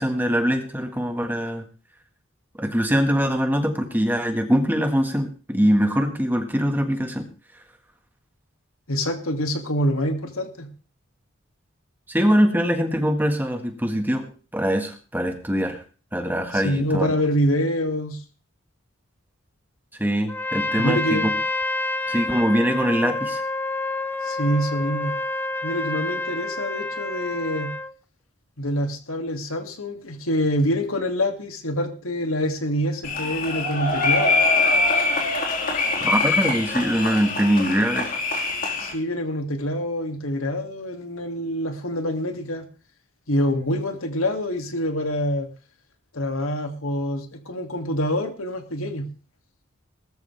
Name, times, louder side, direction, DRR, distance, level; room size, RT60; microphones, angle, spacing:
voice 1, 0.0-1.6 2.6-7.3 12.1-15.8 16.1-17.1 20.0-21.3 22.1-23.4 36.0-38.2, equal, 10° right, 5 dB, 1.7 m, -23 dB
voice 2, 8.9-10.7 16.5-18.2 20.8-21.3 24.2-25.1 25.6-27.7 28.6-34.4 38.8-42.7 43.3-45.5 46.1-49.1, equal, 80° left, 5 dB, 2.6 m, -26 dB
Trumpet, 20.3-27.9, left 2 dB, 10° left, 0.6 m, -28 dB
sound 1, 33.0-38.9, left 3 dB, 40° left, 4.4 m, -23 dB
19.0 x 13.5 x 3.5 m, 0.37 s
head